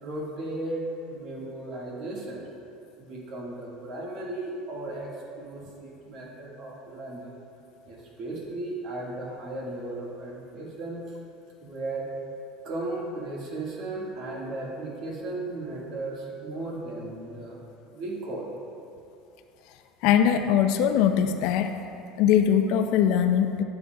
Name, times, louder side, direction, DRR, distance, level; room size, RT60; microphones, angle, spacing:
voice 1, 0.0-2.4 3.0-7.3 7.9-11.0 11.6-12.1 12.6-17.6 17.9-18.5, right 2 dB, 55° right, -3 dB, 1.6 m, -35 dB
voice 2, 20.0-21.7 22.2-23.6, left 9 dB, 65° left, 7 dB, 0.3 m, -21 dB
9.7 x 6.6 x 2.2 m, 2.6 s
cardioid pair, 135°, 0 cm